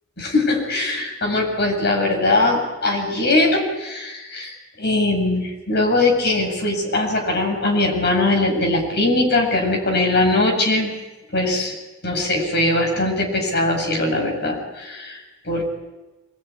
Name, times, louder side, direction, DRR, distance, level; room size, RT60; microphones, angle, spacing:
voice 1, 0.2-10.9 11.3-11.8 12.0-15.7, left 2 dB, 55° left, 2 dB, 7.8 m, -21 dB
25.0 x 21.5 x 9.9 m, 1.1 s
head